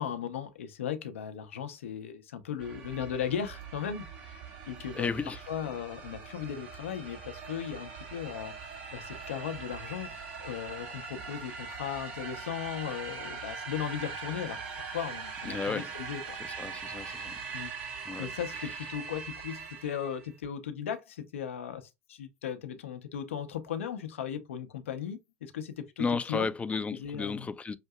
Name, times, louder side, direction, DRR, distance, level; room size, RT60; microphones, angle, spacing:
voice 1, 0.0-5.1 5.5-10.1 10.4-16.4 17.5-17.7 18.2-27.5, left 8 dB, 80° left, 0.6 m, -37 dB
sound 1, 2.6-20.3, right 5 dB, 70° right, 1.5 m, -42 dB
voice 2, 4.9-5.4 15.4-15.9 16.4-17.4 18.1-18.3 26.0-27.8, left 4 dB, 20° left, 0.4 m, -33 dB
5.7 x 2.6 x 2.2 m
hypercardioid pair, 75°, 7 cm